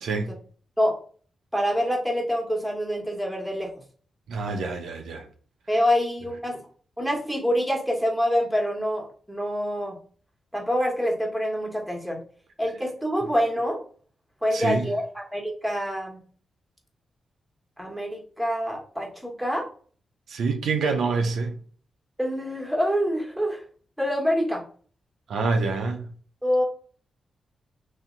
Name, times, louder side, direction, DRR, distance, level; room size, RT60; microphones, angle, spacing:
voice 1, 1.5-3.7 5.7-6.6 7.0-10.0 10.5-12.2 12.6-13.8 14.4-16.2 17.8-19.7 22.2-23.6 24.0-24.6 26.4-26.6, equal, ahead, 1.2 m, -26 dB
voice 2, 4.3-5.3 14.5-14.8 20.3-21.5 25.3-26.1, right 4 dB, 80° right, 0.5 m, -26 dB
2.7 x 2.1 x 3.7 m
supercardioid pair, 50°, 0 cm